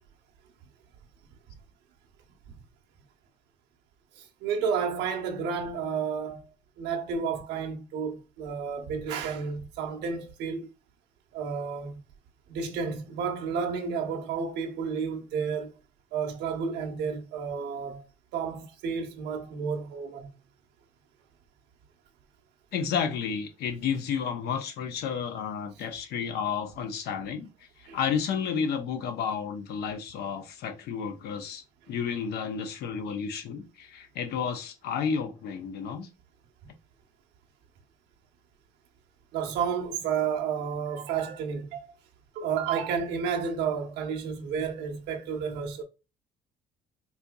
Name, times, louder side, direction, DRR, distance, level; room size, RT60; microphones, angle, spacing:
voice 1, 4.2-6.4 6.8-10.7 11.3-12.0 12.5-15.8 16.1-18.1 18.3-20.3 27.9-28.0 39.3-41.9 42.3-45.8, right 6 dB, 85° right, 0.9 m, -31 dB
voice 2, 22.7-27.5 27.8-36.1, left 7 dB, 75° left, 0.8 m, -31 dB
4.3 x 2.7 x 2.3 m
cardioid pair, 110°, 17 cm